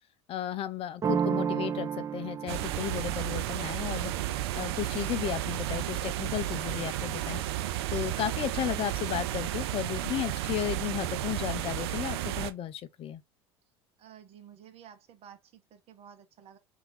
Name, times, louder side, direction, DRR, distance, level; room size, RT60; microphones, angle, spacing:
voice 1, 0.3-4.1 4.5-13.2, left 11 dB, 45° left, 0.5 m, -34 dB
sound 1, 1.0-6.6, right 7 dB, 25° right, 0.6 m, -35 dB
sound 2, 2.5-12.5, right 13 dB, 75° right, 0.4 m, -33 dB
voice 2, 14.0-16.6, right 9 dB, 50° right, 0.9 m, -52 dB
3.4 x 2.5 x 3.8 m
hypercardioid pair, 75°, 14 cm